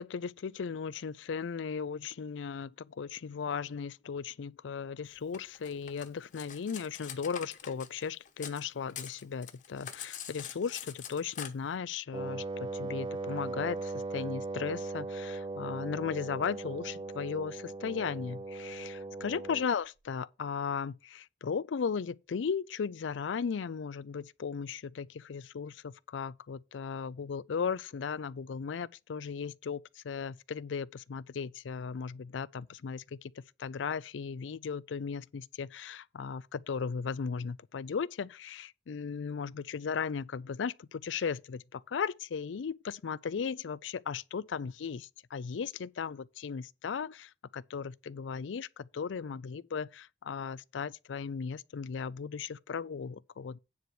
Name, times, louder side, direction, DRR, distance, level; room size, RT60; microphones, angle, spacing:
voice 1, 0.0-33.3 33.6-53.6, left 6 dB, 85° left, 0.4 m, -36 dB
Cutlery silverware, 5.3-8.6 8.9-11.5, left 9 dB, 45° left, 1.1 m, -44 dB
Wind instrument woodwind instrument, 12.1-19.7, right 3 dB, 25° right, 0.4 m, -38 dB
9.6 x 4.7 x 6.0 m
head